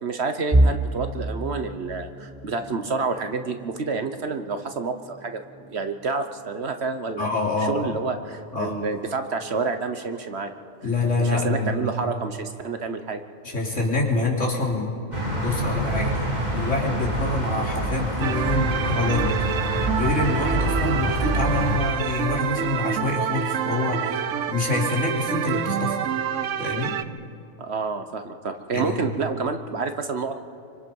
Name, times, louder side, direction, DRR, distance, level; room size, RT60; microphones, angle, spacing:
voice 1, 0.0-7.3 7.6-10.5 11.2-13.2 27.6-30.5, right 4 dB, 55° right, 7 dB, 1.3 m, -29 dB
sound 1, 0.5-12.4 12.8-13.0 13.4-13.6 14.5-14.9, right 1 dB, 20° right, 0.8 m, -31 dB
voice 2, 7.2-7.9 8.5-8.8 10.8-11.9 13.4-14.9 15.4-16.2 16.5-19.4 20.0-26.0 26.6-27.0 28.7-29.2, left 2 dB, 70° left, -2 dB, 3.7 m, -26 dB
sound 2, 15.1-21.8, right 1 dB, 35° right, 3.5 m, -26 dB
sound 3, 18.2-27.0, right 8 dB, 70° right, 1.1 m, -27 dB
26.5 x 25.0 x 5.5 m, 2.7 s
omnidirectional pair, 1.3 m